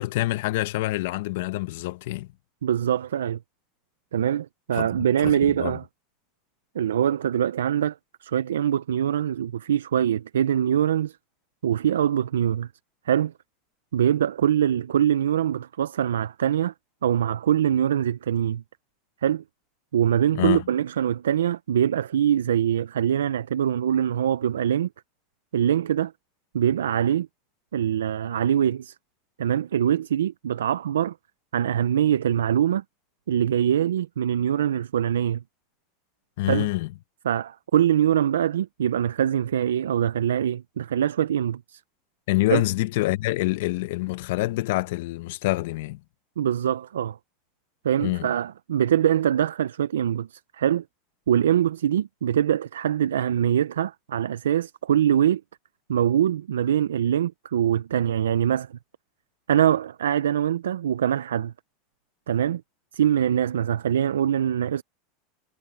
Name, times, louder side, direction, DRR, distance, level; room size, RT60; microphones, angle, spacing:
voice 1, 0.0-2.3 4.7-4.9 5.2-5.8 20.3-20.6 36.4-36.9 42.3-46.0 48.0-48.3, left 18 dB, 70° left, 1.0 m, -26 dB
voice 2, 2.6-3.4 4.1-5.8 6.7-11.2 11.6-12.7 13.1-13.3 13.9-16.7 17.0-18.6 19.2-19.4 19.9-24.9 25.5-26.1 26.5-27.3 27.7-29.0 29.4-31.1 31.5-32.8 33.3-35.4 36.5-36.7 37.3-41.8 42.5-42.6 46.4-47.2 47.8-50.8 51.3-55.4 55.9-58.8 59.5-61.5 62.3-62.6 62.9-64.8, right 10 dB, 90° right, 0.5 m, -23 dB
hypercardioid pair, 105°, 0 cm